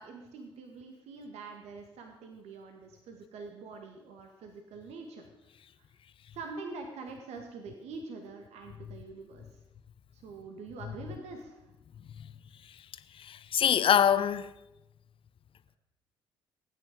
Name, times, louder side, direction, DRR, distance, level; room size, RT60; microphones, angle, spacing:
voice 1, 0.0-5.2 5.8-5.9 6.3-9.4 10.1-11.6, right 4 dB, 65° right, 1.7 m, -45 dB
voice 2, 13.2-14.5, left 9 dB, 45° left, 0.8 m, -24 dB
19.5 x 9.3 x 5.1 m
hypercardioid pair, 50°, 12 cm